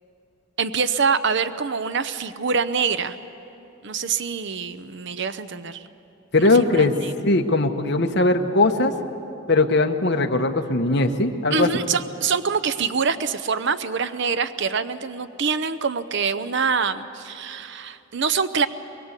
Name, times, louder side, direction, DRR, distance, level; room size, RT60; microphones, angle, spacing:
voice 1, 0.6-3.2 3.8-5.9 6.4-7.1 11.5-18.7, right 5 dB, 55° right, 12 dB, 0.7 m, -25 dB
voice 2, 6.3-6.9 7.2-8.9 9.5-11.7, left 2 dB, 55° left, 5 dB, 1.3 m, -19 dB
23.0 x 22.0 x 8.2 m, 2.8 s
head